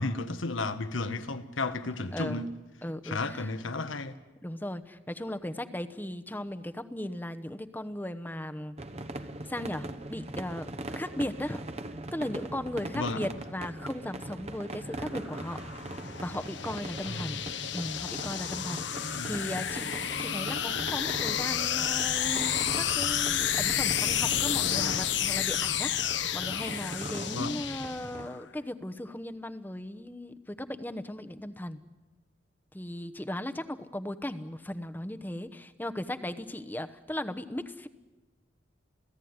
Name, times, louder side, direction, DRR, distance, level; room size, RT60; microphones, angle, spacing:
voice 1, 0.0-2.5 3.0-4.2 12.9-13.2 17.1-17.4 19.1-19.3 27.3-27.6, left 3 dB, 85° left, 1.4 m, -33 dB
voice 2, 2.1-2.5 2.8-3.5 4.4-8.7 9.4-11.7 12.1-15.6 16.2-17.4 17.7-31.8 32.7-37.9, left 1 dB, 10° left, 0.9 m, -37 dB
sound 1, 8.8-28.3, right 1 dB, 35° right, 1.0 m, -41 dB
sound 2, 14.9-28.4, left 10 dB, 70° left, 1.2 m, -31 dB
28.5 x 16.5 x 9.6 m
head